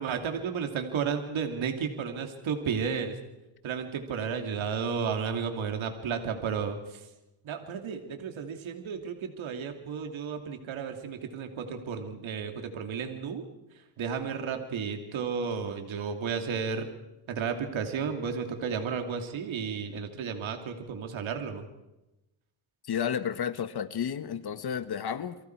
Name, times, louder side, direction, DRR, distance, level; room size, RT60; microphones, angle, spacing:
voice 1, 0.0-3.2 3.6-7.1 7.4-13.4 14.0-16.8 17.3-21.7, right 6 dB, 75° right, 5 dB, 2.8 m, -33 dB
voice 2, 22.9-25.4, left 8 dB, 50° left, 12 dB, 1.5 m, -32 dB
29.0 x 23.5 x 4.7 m, 0.96 s
cardioid pair, 115°, 48 cm